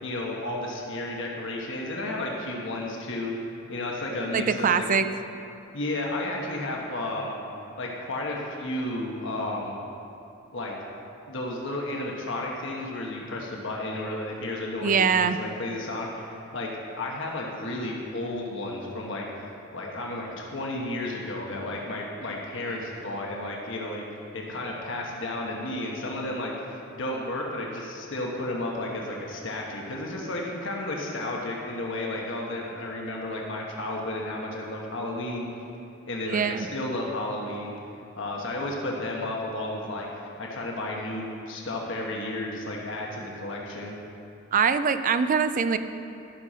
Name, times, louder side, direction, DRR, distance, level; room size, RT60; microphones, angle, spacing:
voice 1, 0.0-3.4 3.7-4.9 5.7-7.3 7.8-9.8 10.5-10.8 11.3-16.7 17.0-19.3 19.7-24.0 24.3-35.4 36.1-37.7 38.1-43.9, left 1 dB, 65° left, -1 dB, 1.3 m, -32 dB
voice 2, 4.3-5.1 14.8-15.4 36.3-36.7 44.5-45.8, right 6 dB, 40° right, 11 dB, 0.4 m, -23 dB
13.0 x 5.8 x 6.3 m, 2.8 s
head